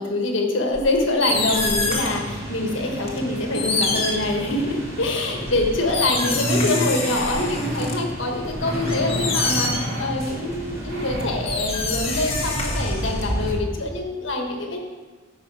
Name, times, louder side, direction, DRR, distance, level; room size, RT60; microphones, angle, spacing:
voice 1, 0.0-14.8, left 2 dB, 75° left, 2 dB, 1.6 m, -25 dB
sound 1, 0.7-2.3 3.1-3.2 3.5-4.8 5.5-7.9 8.4-10.0 11.1-11.2 11.4-13.5, left 3 dB, 30° left, 1.4 m, -27 dB
sound 2, 1.3-13.5, right 1 dB, 15° right, 3.0 m, -33 dB
sound 3, 5.4-5.5 6.2-6.7 7.4-7.9 8.6-10.1 10.9-11.3, right 1 dB, 65° right, 3.2 m, -28 dB
14.0 x 5.4 x 4.8 m, 1.3 s
head